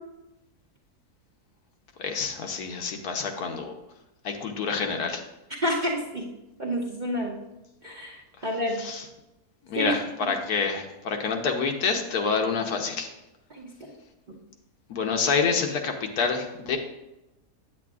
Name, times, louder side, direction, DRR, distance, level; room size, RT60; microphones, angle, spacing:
voice 1, 2.0-3.8 4.2-5.2 8.8-9.0 9.7-13.1 14.9-16.8, left 5 dB, 75° left, 4 dB, 1.3 m, -27 dB
voice 2, 5.6-6.3 6.6-7.3 7.8-8.8 9.8-9.9 13.5-13.9, equal, 45° right, -3 dB, 0.6 m, -29 dB
8.5 x 8.4 x 2.4 m, 0.96 s
omnidirectional pair, 1.7 m